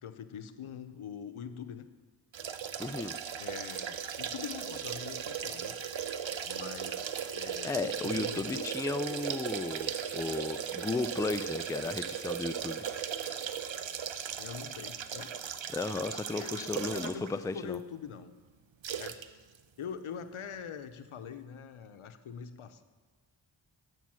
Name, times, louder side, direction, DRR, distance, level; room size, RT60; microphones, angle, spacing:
voice 1, 0.0-1.9 3.4-5.8 6.4-8.7 14.1-15.3 16.3-18.3 19.0-19.2 19.8-22.8, left 7 dB, 80° left, 10 dB, 0.8 m, -44 dB
sound 1, 2.3-17.3 17.7-17.8 18.8-19.3 19.5-19.6, right 8 dB, 65° right, 0.8 m, -37 dB
voice 2, 2.8-3.2 7.6-12.9 15.7-17.8, left 3 dB, 10° left, 11 dB, 0.3 m, -34 dB
11.5 x 8.2 x 6.3 m, 1.4 s
wide cardioid pair, 70°, 49 cm